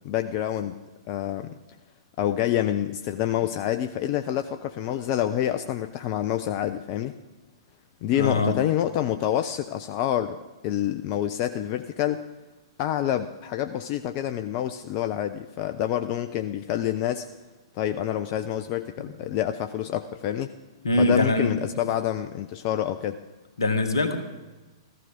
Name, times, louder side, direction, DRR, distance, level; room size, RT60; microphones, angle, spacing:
voice 1, 0.0-0.8 1.1-1.6 2.2-7.1 8.0-10.4 10.6-12.2 12.8-17.3 17.7-20.5 21.0-23.2, left 11 dB, 35° left, 9 dB, 0.5 m, -27 dB
voice 2, 8.1-8.6 19.0-19.1 20.8-21.5 23.6-24.2, left 2 dB, 70° left, 7 dB, 1.7 m, -23 dB
14.5 x 14.5 x 5.1 m, 1.2 s
figure-of-eight pair, 110°, 2 cm